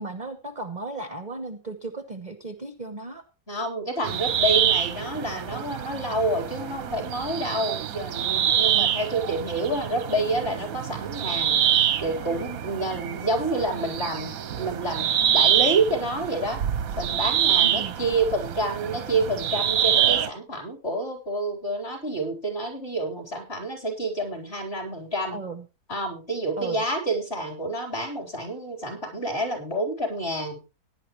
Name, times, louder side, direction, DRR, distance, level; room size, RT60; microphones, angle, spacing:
voice 1, 0.0-3.2 8.7-8.9 17.6-18.0 25.3-25.6 26.6-26.8, right 3 dB, 35° right, 9 dB, 0.8 m, -35 dB
voice 2, 3.5-16.6 17.0-25.4 25.9-30.6, right 1 dB, 30° left, 2 dB, 4.2 m, -28 dB
sound 1, 4.0-20.3, right 9 dB, 60° right, 1.0 m, -26 dB
17.5 x 10.5 x 3.1 m, 0.29 s
omnidirectional pair, 2.1 m